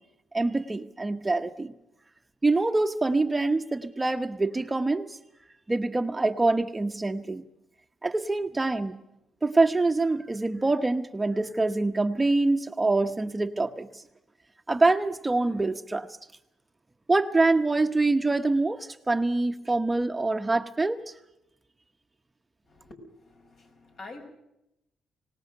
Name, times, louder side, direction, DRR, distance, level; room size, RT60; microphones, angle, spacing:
voice 1, 0.3-1.7 2.4-5.2 5.7-7.4 8.0-8.9 9.4-13.9 14.7-16.1 17.1-21.1, right 2 dB, 15° right, 8 dB, 0.9 m, -25 dB
voice 2, 22.6-24.3, left 2 dB, 55° left, 3 dB, 6.0 m, -47 dB
24.5 x 18.5 x 6.7 m, 0.86 s
cardioid pair, 90°, 0 cm